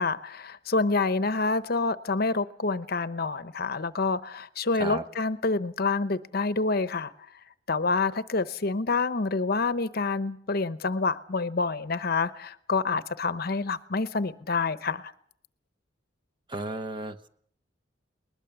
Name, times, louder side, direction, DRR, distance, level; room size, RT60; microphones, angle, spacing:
voice 1, 0.0-7.1 7.7-15.1, left 3 dB, 50° left, 0.9 m, -27 dB
voice 2, 16.5-17.3, right 2 dB, 25° right, 1.0 m, -34 dB
21.0 x 20.5 x 7.0 m
head